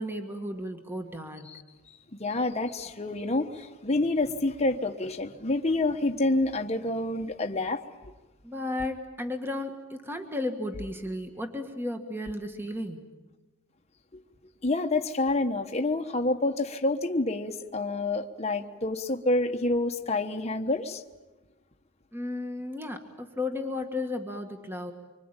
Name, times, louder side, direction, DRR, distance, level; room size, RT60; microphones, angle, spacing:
voice 1, 0.0-1.5 8.4-13.1 22.1-24.9, left 2 dB, 10° right, 5 dB, 1.6 m, -34 dB
voice 2, 2.2-7.8 14.6-21.0, left 2 dB, 30° left, 4 dB, 1.2 m, -28 dB
25.5 x 24.5 x 9.0 m, 1.2 s
head